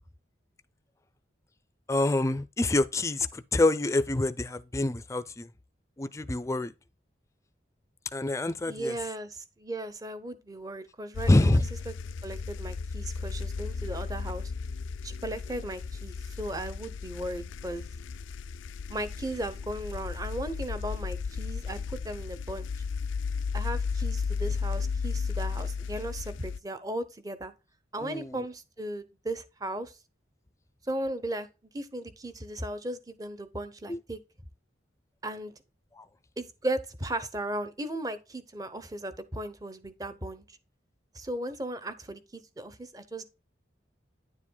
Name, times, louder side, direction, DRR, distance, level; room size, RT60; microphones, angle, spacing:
voice 1, 1.9-5.5 6.0-6.7 8.1-8.9 11.3-11.6 28.0-28.4 33.9-34.0 36.0-36.1, left 2 dB, 15° left, 0.4 m, -26 dB
voice 2, 8.7-11.9 12.2-14.5 15.0-17.8 18.9-22.7 23.5-27.5 27.9-30.0 30.8-31.5 31.7-34.2 35.2-35.5 36.4-40.6 41.1-43.3, right 1 dB, 20° right, 0.8 m, -36 dB
sound 1, 11.1-26.6, left 5 dB, 85° left, 0.4 m, -34 dB
10.0 x 7.4 x 2.2 m
head